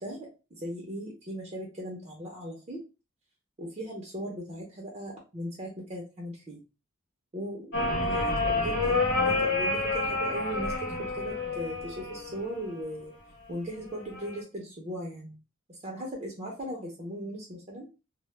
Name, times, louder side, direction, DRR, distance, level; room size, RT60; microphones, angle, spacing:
voice 1, 0.0-2.8 3.6-6.6 7.3-9.0 9.2-13.1 13.5-15.4 15.7-17.9, equal, 30° right, -2 dB, 0.5 m, -38 dB
sound 1, 7.7-12.8 13.9-14.4, left 3 dB, 55° left, 0.9 m, -29 dB
2.1 x 2.0 x 3.0 m, 0.31 s
head